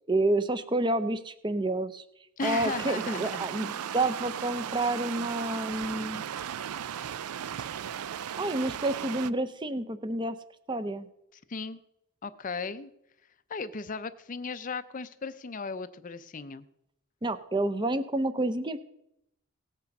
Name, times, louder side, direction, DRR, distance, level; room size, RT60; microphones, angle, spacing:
voice 1, 0.1-2.0 2.4-6.3 8.4-10.4 10.7-11.1 17.2-18.8, right 2 dB, 20° right, 13 dB, 0.6 m, -29 dB
voice 2, 2.4-3.7 11.3-11.8 12.2-12.9 13.5-16.6, left 4 dB, 35° left, 13 dB, 0.5 m, -36 dB
sound 1, 2.4-9.3, right 9 dB, 85° right, 0.4 m, -36 dB
17.5 x 8.3 x 5.3 m, 0.81 s
head